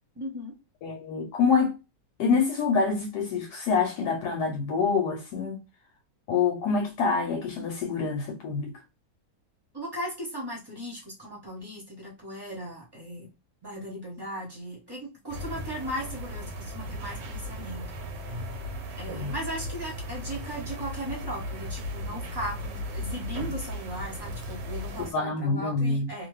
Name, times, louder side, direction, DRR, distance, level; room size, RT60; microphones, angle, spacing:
voice 1, 0.1-0.6 9.7-13.3 13.6-17.9 19.0-26.3, equal, 20° right, 0.7 m, -37 dB
voice 2, 0.8-1.8 2.2-5.6 6.3-8.8 19.1-19.3 25.0-26.1, left 5 dB, 75° left, 1.1 m, -26 dB
sound 1, 15.3-25.1, left 1 dB, 85° right, 1.3 m, -36 dB
2.7 x 2.2 x 3.1 m
omnidirectional pair, 1.8 m